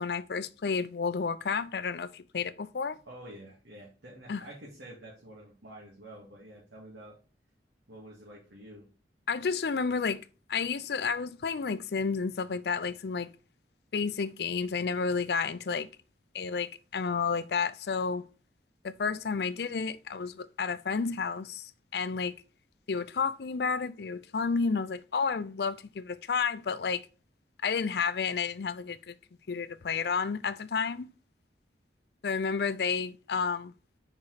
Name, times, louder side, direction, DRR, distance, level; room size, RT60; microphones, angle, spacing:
voice 1, 0.0-3.0 4.3-4.4 9.3-13.3 13.9-15.9 16.3-18.2 18.8-22.4 22.9-27.1 27.6-29.2 29.5-31.1 32.2-33.7, left 5 dB, 65° left, 0.4 m, -31 dB
voice 2, 3.1-7.2 7.9-8.9, right 1 dB, 85° right, 2.2 m, -48 dB
5.3 x 4.9 x 4.1 m
head